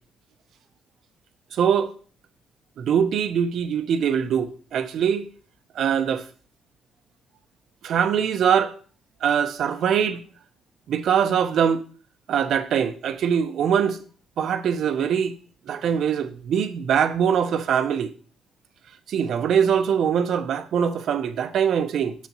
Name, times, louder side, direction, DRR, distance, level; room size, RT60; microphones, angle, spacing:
voice 1, 1.5-1.9 2.8-5.3 5.8-6.2 7.8-8.7 9.2-10.2 10.9-11.8 12.3-14.0 14.4-15.3 15.7-18.1 19.1-22.1, right 8 dB, 70° right, 0.7 m, -22 dB
6.7 x 4.1 x 6.1 m
cardioid pair, 90°, 0 cm